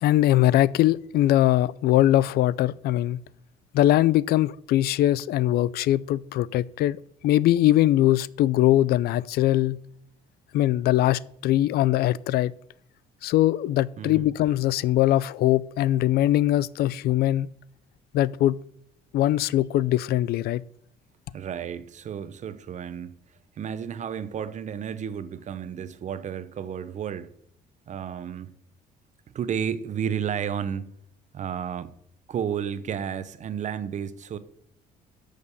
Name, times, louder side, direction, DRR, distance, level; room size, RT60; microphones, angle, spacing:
voice 1, 0.0-3.2 3.7-9.8 10.5-12.5 13.2-17.5 18.1-18.6 19.1-20.6, left 14 dB, 70° left, 0.4 m, -21 dB
voice 2, 14.0-14.3 21.3-23.2 23.6-27.3 27.9-28.5 29.3-30.9 31.3-31.9 32.3-34.4, right 8 dB, 45° right, 0.8 m, -32 dB
7.1 x 6.5 x 6.7 m
cardioid pair, 110°, 17 cm